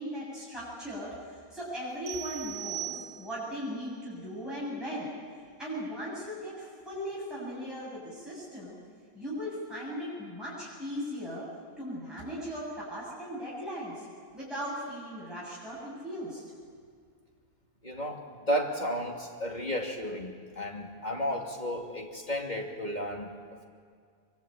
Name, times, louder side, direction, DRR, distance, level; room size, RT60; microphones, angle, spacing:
voice 1, 0.0-5.1 5.6-8.8 9.1-11.5 11.8-14.0 14.3-16.4, equal, ahead, -8 dB, 7.7 m, -38 dB
sound 1, 2.1-3.6, right 12 dB, 75° right, 1.3 m, -39 dB
voice 2, 17.8-23.3, equal, 30° left, 0 dB, 2.9 m, -33 dB
24.0 x 23.5 x 8.9 m, 2.1 s
omnidirectional pair, 1.5 m